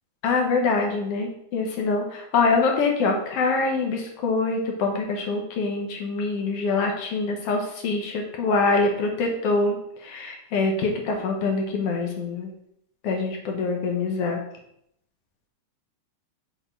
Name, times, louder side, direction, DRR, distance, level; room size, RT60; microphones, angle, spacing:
voice 1, 0.2-9.8 10.0-12.5 13.0-14.4, left 3 dB, 60° left, 1 dB, 1.8 m, -24 dB
6.6 x 3.8 x 5.1 m, 0.74 s
omnidirectional pair, 3.6 m